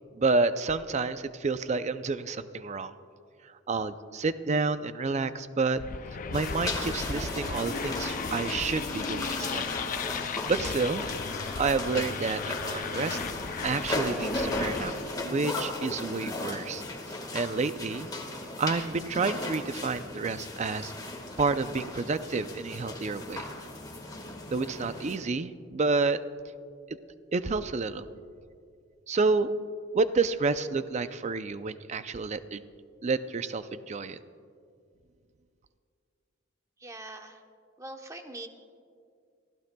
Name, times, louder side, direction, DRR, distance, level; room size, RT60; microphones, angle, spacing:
voice 1, 0.2-2.9 3.7-5.8 6.3-9.7 10.5-11.1 11.6-13.2 13.6-14.9 15.2-16.8 17.3-18.1 18.6-23.5 24.5-26.2 26.9-27.0 27.3-28.1 29.1-29.5 29.9-32.6 33.0-34.2, right 4 dB, 35° right, 12 dB, 0.5 m, -29 dB
sound 1, 5.8-15.2, left 6 dB, 45° left, 0.4 m, -36 dB
sound 2, 6.3-25.2, left 2 dB, 20° left, 1.6 m, -36 dB
voice 2, 36.8-37.4 37.8-38.5, right 2 dB, 15° right, 5 dB, 0.9 m, -42 dB
28.0 x 15.5 x 2.3 m, 2.3 s
head